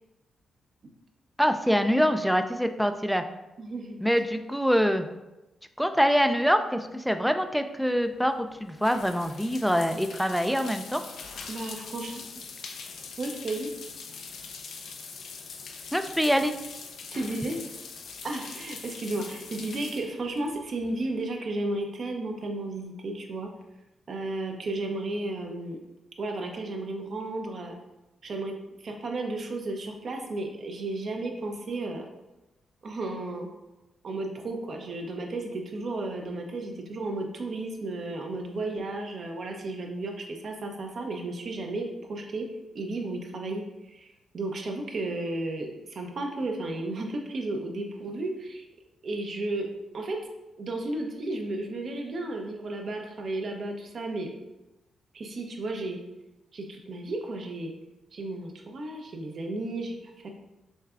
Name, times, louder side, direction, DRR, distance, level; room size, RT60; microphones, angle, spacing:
voice 1, 1.4-3.2 4.0-5.1 5.8-11.0 15.9-16.5, equal, ahead, 8 dB, 0.3 m, -25 dB
voice 2, 3.6-4.0 11.5-12.2 13.2-13.7 17.1-17.6 18.2-23.5 24.1-25.8 26.2-27.8 28.2-32.1 32.8-33.5 34.0-42.5 42.7-44.1 44.3-48.6 49.0-49.7 49.9-50.2 50.6-54.3 55.1-56.0 56.5-57.7 58.1-60.3, right 2 dB, 60° right, 2 dB, 0.6 m, -33 dB
sound 1, 8.0-21.2, left 5 dB, 75° left, 0.4 m, -43 dB
6.3 x 2.3 x 2.4 m, 1.0 s
cardioid pair, 70°, 0 cm